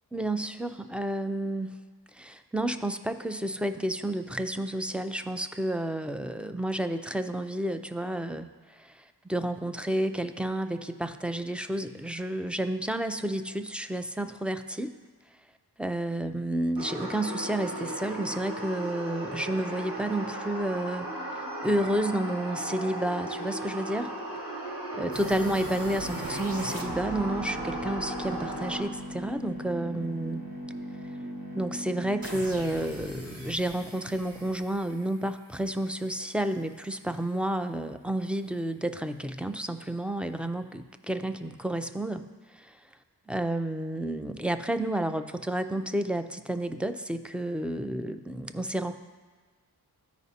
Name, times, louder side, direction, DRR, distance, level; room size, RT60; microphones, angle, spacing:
voice 1, 0.1-1.8 2.1-8.5 8.8-14.9 15.8-24.1 25.0-30.4 31.5-42.3 42.5-42.7 43.3-49.0, right 1 dB, 5° right, 8 dB, 0.3 m, -31 dB
sound 1, 16.8-28.8, right 1 dB, 75° right, 2.0 m, -36 dB
sound 2, 25.1-36.1, equal, 60° right, 1.1 m, -39 dB
13.5 x 5.1 x 2.8 m, 1.4 s
wide cardioid pair, 75°, 40 cm